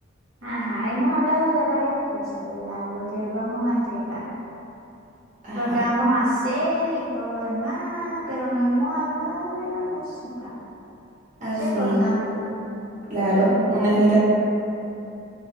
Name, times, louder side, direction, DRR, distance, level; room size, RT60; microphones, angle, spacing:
voice 1, 0.4-4.2 5.5-10.5 11.5-12.6, equal, 70° right, -10 dB, 0.7 m, -25 dB
voice 2, 5.4-5.8 11.4-12.0 13.1-14.2, right 1 dB, 40° right, -12 dB, 0.8 m, -21 dB
2.3 x 2.2 x 2.7 m, 2.8 s
head